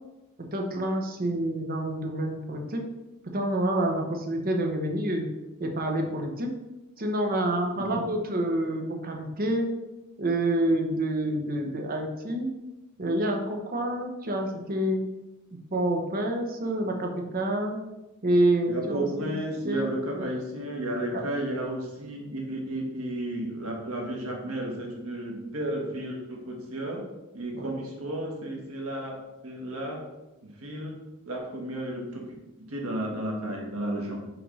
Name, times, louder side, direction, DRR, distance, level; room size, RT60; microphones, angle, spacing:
voice 1, 0.4-2.8 3.2-5.3 5.6-6.5 7.0-9.7 10.2-12.5 13.0-15.1 15.7-17.8 18.2-19.3 19.7-20.3 21.1-21.3 27.5-27.7, right 1 dB, 45° right, 3 dB, 0.9 m, -28 dB
voice 2, 18.7-27.1 27.3-30.1 30.4-32.3 32.6-34.2, right 1 dB, 75° right, -1 dB, 1.5 m, -33 dB
5.8 x 3.4 x 5.5 m, 0.99 s
head